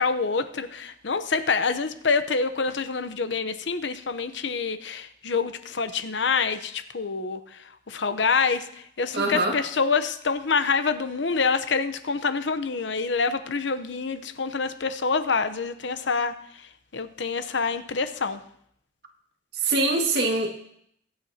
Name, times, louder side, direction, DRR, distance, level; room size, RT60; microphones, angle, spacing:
voice 1, 0.0-7.4 7.9-8.6 9.0-16.3 16.9-18.4, left 5 dB, 75° left, 10 dB, 0.8 m, -26 dB
voice 2, 9.1-9.6 19.6-20.6, right 2 dB, 60° right, 1 dB, 2.0 m, -24 dB
23.5 x 9.0 x 2.9 m, 0.69 s
head